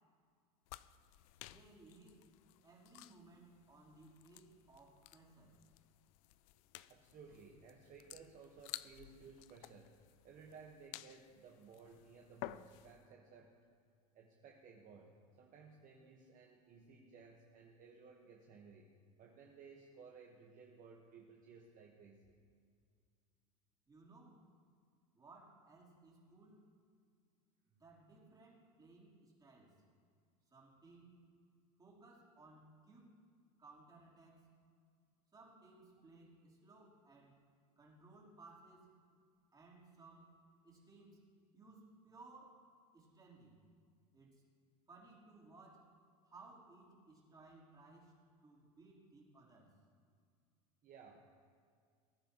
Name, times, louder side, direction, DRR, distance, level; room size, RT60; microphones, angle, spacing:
sound 1, 0.7-13.1, left 16 dB, 65° left, 0.4 m, -55 dB
voice 1, 1.4-2.3 2.6-5.6 23.9-24.4 25.1-26.7 27.7-29.8 30.5-31.2 31.8-33.2 33.6-34.5 35.3-37.3 37.8-38.9 39.5-40.4 40.6-41.2 41.5-42.6 42.9-43.6 44.1-44.4 44.9-45.9 46.2-49.7, right 3 dB, 20° right, -5 dB, 3.7 m, -61 dB
voice 2, 6.9-13.5 14.1-22.4 50.8-51.4, right 5 dB, 45° right, 0 dB, 1.3 m, -58 dB
19.5 x 10.0 x 3.0 m, 2.1 s
supercardioid pair, 100°, 19 cm